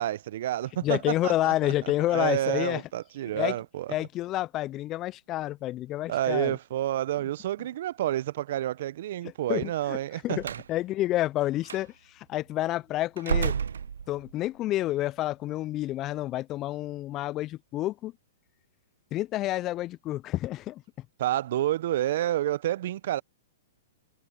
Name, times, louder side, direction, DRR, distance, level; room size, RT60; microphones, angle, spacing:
voice 1, 0.0-1.5 2.1-3.9 6.1-10.6 21.2-23.2, right 13 dB, 60° right, 0.9 m, -29 dB
voice 2, 0.8-2.8 3.3-3.6 3.9-6.6 9.5-10.0 10.2-13.5 14.1-18.1 19.1-20.8, left 15 dB, 30° left, 0.4 m, -29 dB
Slam, 10.4-10.7 11.6-11.8 13.2-14.5, right 7 dB, 80° right, 0.4 m, -30 dB
hypercardioid pair, 120°, 0 cm